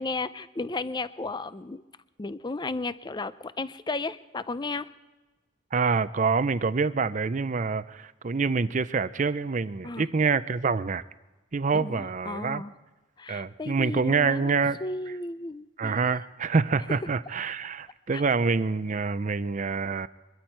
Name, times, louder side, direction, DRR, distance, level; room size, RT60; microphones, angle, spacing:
voice 1, 0.0-1.8 2.2-4.9 9.8-10.0 11.7-12.7 13.2-15.9 18.1-18.2, left 3 dB, 20° left, 14 dB, 0.5 m, -34 dB
voice 2, 5.7-11.0 11.5-12.6 13.3-14.8 15.8-20.1, right 4 dB, 35° right, 15 dB, 0.5 m, -26 dB
23.5 x 13.0 x 4.6 m, 1.2 s
head